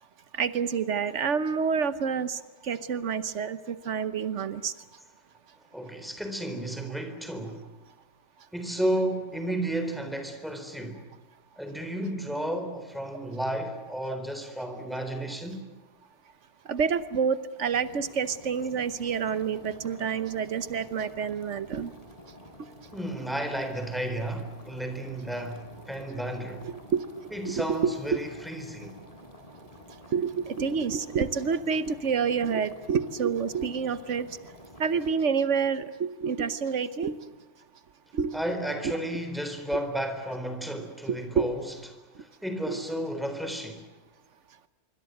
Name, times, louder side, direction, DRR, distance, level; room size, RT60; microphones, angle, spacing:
voice 1, 0.3-4.7 16.7-21.9 26.9-27.0 27.4-27.9 30.1-34.3 34.8-37.2 38.1-38.3 40.8-41.5 42.7-42.8, right 6 dB, 85° right, 1.3 m, -28 dB
voice 2, 5.7-7.7 8.5-11.1 11.6-15.6 22.9-26.7 27.3-29.0 38.3-41.7 42.2-43.9, right 1 dB, ahead, 3.9 m, -32 dB
sound 1, 17.7-35.1, left 1 dB, 30° left, 4.2 m, -50 dB
25.5 x 24.5 x 7.9 m
omnidirectional pair, 1.2 m